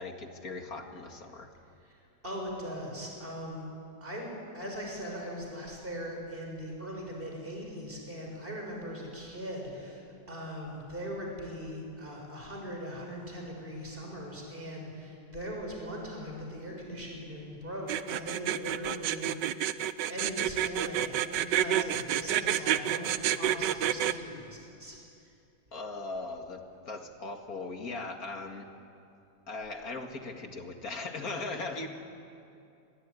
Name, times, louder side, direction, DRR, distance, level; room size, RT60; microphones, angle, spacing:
voice 1, 0.0-1.5 25.7-28.7 29.5-31.9, left 3 dB, 45° left, 4 dB, 2.5 m, -39 dB
voice 2, 2.2-3.7 4.0-10.0 10.3-19.5 20.1-25.0, equal, 25° right, 0 dB, 6.6 m, -40 dB
sound 1, 17.9-24.1, right 11 dB, 65° right, 1.3 m, -28 dB
28.0 x 21.5 x 9.7 m, 2.6 s
omnidirectional pair, 2.2 m